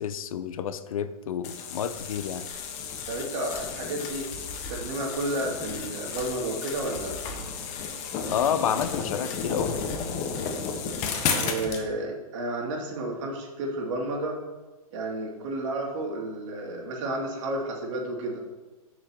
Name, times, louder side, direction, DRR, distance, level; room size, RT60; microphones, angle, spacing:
voice 1, 0.0-2.5 8.3-9.8, left 8 dB, 65° left, 12 dB, 0.6 m, -29 dB
sound 1, 1.4-11.8, left 5 dB, 35° left, 1.4 m, -33 dB
voice 2, 3.1-4.3 4.7-7.2 11.4-14.4 14.9-18.4, right 2 dB, 55° right, -1 dB, 2.7 m, -31 dB
13.0 x 6.2 x 3.0 m, 1.2 s
hypercardioid pair, 120°, 19 cm